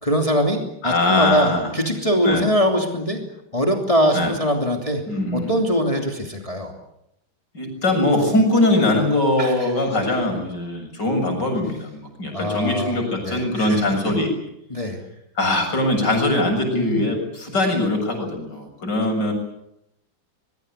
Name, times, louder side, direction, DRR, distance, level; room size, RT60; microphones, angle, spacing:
voice 1, 0.0-3.2 3.5-5.1 5.3-6.7 9.4-9.7 12.3-13.9 14.7-15.0 16.7-17.1, equal, 15° left, 3 dB, 3.0 m, -22 dB
voice 2, 0.8-1.7 2.2-2.5 4.1-4.3 5.1-5.5 7.5-14.3 15.4-19.3, left 2 dB, 65° left, 3 dB, 7.7 m, -21 dB
23.5 x 22.5 x 8.2 m, 0.81 s
omnidirectional pair, 2.0 m